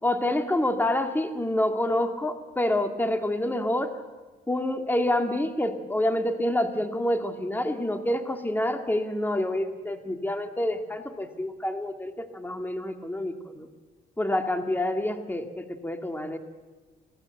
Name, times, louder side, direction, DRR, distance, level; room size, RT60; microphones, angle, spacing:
voice 1, 0.0-3.9 4.5-13.7 14.2-16.4, left 1 dB, 10° left, 6 dB, 2.2 m, -27 dB
25.5 x 18.0 x 7.9 m, 1.3 s
cardioid pair, 90°, 20 cm